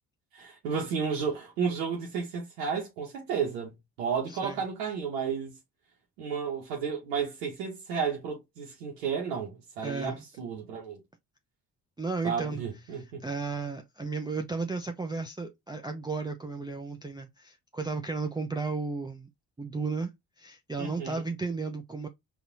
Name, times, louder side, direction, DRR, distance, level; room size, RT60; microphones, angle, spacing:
voice 1, 0.3-5.6 6.2-11.0 12.2-13.2 20.8-21.2, right 6 dB, 85° right, 0.9 m, -32 dB
voice 2, 4.3-4.6 9.8-10.2 12.0-12.6 12.9-19.3 19.6-22.1, right 4 dB, 10° right, 0.4 m, -34 dB
4.0 x 2.4 x 2.5 m
hypercardioid pair, 40°, 47 cm